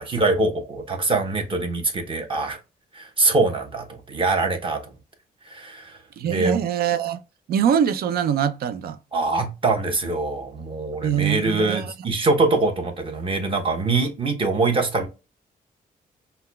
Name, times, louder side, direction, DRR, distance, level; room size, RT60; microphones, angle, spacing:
voice 1, 0.0-2.6 2.9-4.8 5.5-5.9 6.2-6.6 9.1-15.1, right 3 dB, 35° right, 1.0 m, -23 dB
voice 2, 6.2-7.2 7.5-9.0 11.0-11.9, right 8 dB, 80° right, 0.5 m, -23 dB
5.6 x 2.2 x 2.2 m
cardioid pair, 130°, 16 cm